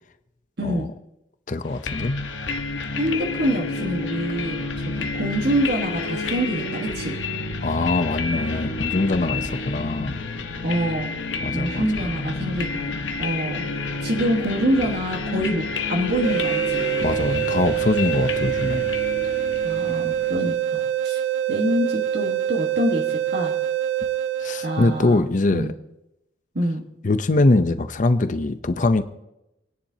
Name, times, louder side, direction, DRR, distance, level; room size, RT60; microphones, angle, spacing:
voice 1, 0.6-0.9 2.9-7.2 10.6-11.1 11.5-13.6 14.0-16.8 19.6-21.2 21.5-23.5 24.6-25.2 25.5-25.7 26.5-26.8, equal, 60° right, -1 dB, 1.5 m, -26 dB
voice 2, 1.5-2.1 5.0-5.1 7.6-10.2 11.4-11.9 17.0-18.9 24.4-25.7 27.0-29.0, left 2 dB, 45° left, 10 dB, 0.6 m, -22 dB
sound 1, 1.8-20.5, left 3 dB, 80° left, 1.0 m, -29 dB
sound 2, 16.2-25.2, right 11 dB, 90° right, 0.4 m, -25 dB
27.5 x 10.0 x 2.8 m, 0.89 s
head